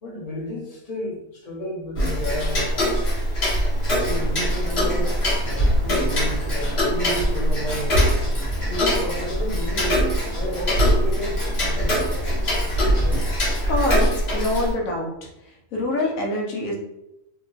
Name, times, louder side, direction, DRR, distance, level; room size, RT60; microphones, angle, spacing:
voice 1, 0.0-3.1 4.0-8.1 8.7-12.3, equal, 30° left, -4 dB, 0.9 m, -32 dB
Tick-tock, 2.0-14.7, equal, 50° left, 1.2 m, -22 dB
Bakerloo Line Train - On Train, 4.1-13.3, right 2 dB, 75° right, 0.4 m, -38 dB
voice 2, 13.5-15.3 15.7-16.8, left 1 dB, 80° left, -1 dB, 1.1 m, -25 dB
3.0 x 2.2 x 3.8 m, 0.89 s
omnidirectional pair, 1.4 m